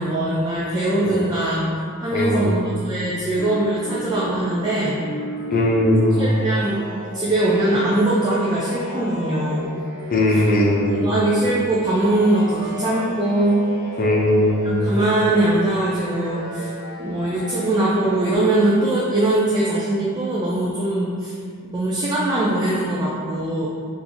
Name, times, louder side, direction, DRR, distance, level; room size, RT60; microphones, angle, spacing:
voice 1, 0.0-1.7 2.0-5.0 6.2-6.8 7.1-9.7 10.9-13.6 14.6-16.7 17.0-21.3 21.7-23.7, right 1 dB, 20° right, -7 dB, 0.4 m, -21 dB
voice 2, 2.1-2.7 5.5-6.3 10.1-11.1 14.0-14.9, left 1 dB, 40° left, -2 dB, 0.5 m, -19 dB
sound 1, 3.4-18.4, equal, 40° right, 0.8 m, -35 dB
3.8 x 2.5 x 2.9 m, 2.1 s
head